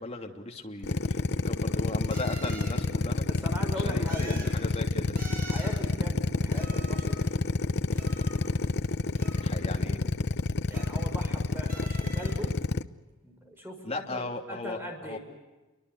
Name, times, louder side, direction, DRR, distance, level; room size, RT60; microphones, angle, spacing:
voice 1, 0.0-3.2 3.8-5.2 9.4-10.0 13.8-15.2, left 2 dB, 30° left, 3 dB, 3.0 m, -37 dB
Drill, 0.8-12.8, left 3 dB, 55° left, 0.8 m, -28 dB
sound 1, 0.8-0.9 2.1-2.8 4.1-4.6 5.2-5.8 6.5-7.3 7.9-8.7 9.2-9.8 10.7-11.4 11.7-12.4, right 2 dB, 45° right, 7.8 m, -45 dB
voice 2, 3.3-4.4 5.5-7.3 10.7-12.6 13.2-15.2, equal, 10° right, 3 dB, 5.8 m, -40 dB
29.5 x 24.0 x 8.1 m, 1.1 s
head